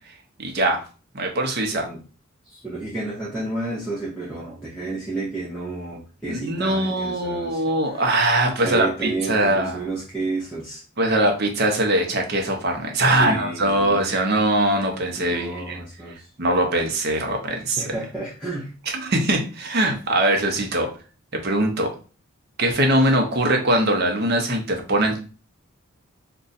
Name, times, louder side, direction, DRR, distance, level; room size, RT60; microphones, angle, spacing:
voice 1, 0.4-0.8 1.1-1.9 6.3-9.8 11.0-15.8 16.4-17.9 18.9-20.9 21.4-21.9 22.6-25.2, right 1 dB, 50° right, 2 dB, 0.7 m, -22 dB
voice 2, 1.7-2.0 2.5-7.6 7.9-8.1 8.6-10.8 13.2-14.0 15.2-16.3 17.8-18.7, right 2 dB, 5° left, -8 dB, 0.7 m, -31 dB
2.5 x 2.3 x 3.9 m, 0.36 s
head